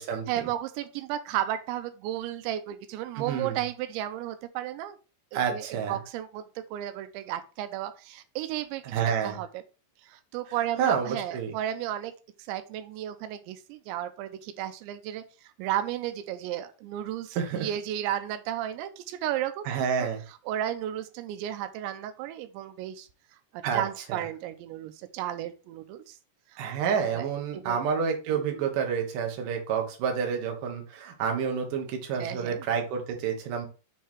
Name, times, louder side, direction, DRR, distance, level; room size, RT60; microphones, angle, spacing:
voice 1, 0.3-5.0 5.3-9.6 10.0-12.1 12.5-19.7 20.0-20.1 20.5-23.1 23.5-26.2 26.5-26.6 27.1-27.3 27.5-27.8 28.3-28.4 32.2-32.7, right 12 dB, 90° right, 10 dB, 2.9 m, -33 dB
voice 2, 3.2-3.6 5.3-6.0 8.8-9.4 10.8-11.5 17.4-17.7 19.7-20.2 23.6-23.8 24.1-24.2 26.6-33.7, right 7 dB, 60° right, 2 dB, 2.5 m, -29 dB
7.5 x 3.4 x 4.5 m, 0.33 s
omnidirectional pair, 5.1 m